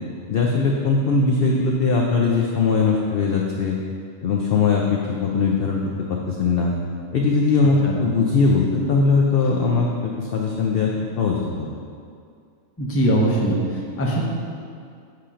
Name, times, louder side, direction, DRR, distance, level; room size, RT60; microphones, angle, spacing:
voice 1, 0.3-3.8 4.2-5.8 6.3-6.7 7.1-10.9 11.2-11.7, left 4 dB, 70° left, -1 dB, 0.5 m, -20 dB
voice 2, 12.8-14.2, right 1 dB, 15° left, -3 dB, 0.5 m, -21 dB
7.6 x 2.9 x 4.9 m, 2.3 s
omnidirectional pair, 1.5 m